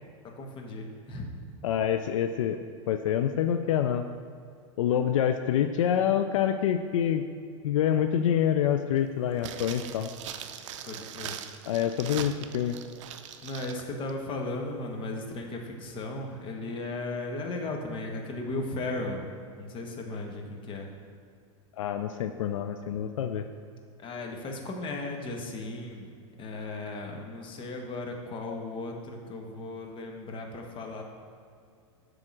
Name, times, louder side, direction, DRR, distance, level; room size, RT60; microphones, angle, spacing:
voice 1, 0.2-1.3 10.3-10.4 10.9-11.4 12.2-12.3 13.4-20.9 24.0-26.1 26.4-31.0, left 2 dB, 30° left, 2 dB, 1.2 m, -36 dB
voice 2, 1.6-4.1 4.8-7.2 7.6-10.1 11.7-12.8 21.8-23.5, left 9 dB, 75° left, 8 dB, 0.4 m, -26 dB
sound 1, 9.4-13.8 14.1-14.2, right 9 dB, 65° right, 0.5 m, -41 dB
7.6 x 3.7 x 6.1 m, 2.3 s
hypercardioid pair, 115°, 16 cm